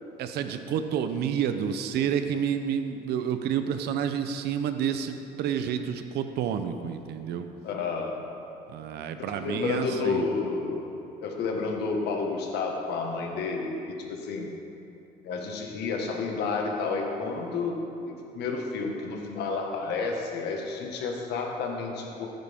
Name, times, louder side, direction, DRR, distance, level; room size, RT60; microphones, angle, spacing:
voice 1, 0.2-7.5 8.7-10.3, right 8 dB, 75° right, 8 dB, 0.8 m, -29 dB
voice 2, 7.6-8.2 9.3-10.9 11.2-13.7 14.1-14.5 15.2-17.8 18.1-22.3, left 4 dB, 80° left, 1 dB, 1.7 m, -30 dB
15.5 x 9.4 x 3.7 m, 2.7 s
cardioid pair, 110°, 17 cm